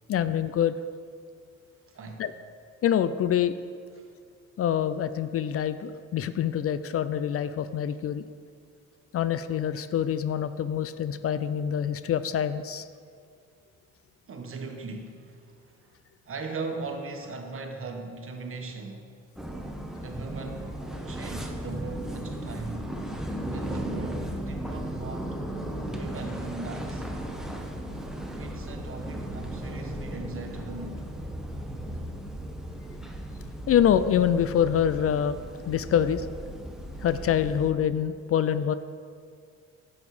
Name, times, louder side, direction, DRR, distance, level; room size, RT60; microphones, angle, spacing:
voice 1, 0.1-0.7 2.2-2.3 2.8-3.5 4.6-8.2 9.1-12.9 33.7-35.4 35.7-36.3 37.0-38.7, left 9 dB, 50° left, 13 dB, 0.4 m, -25 dB
voice 2, 1.9-2.3 4.0-4.1 14.3-15.8 16.2-19.2 20.0-23.0 23.4-25.4 25.9-27.1 28.4-31.1, right 3 dB, 45° right, 4 dB, 1.3 m, -39 dB
sound 1, 19.4-37.7, right 1 dB, ahead, 1.0 m, -36 dB
10.0 x 7.2 x 4.8 m, 2.2 s
cardioid pair, 90°, 30 cm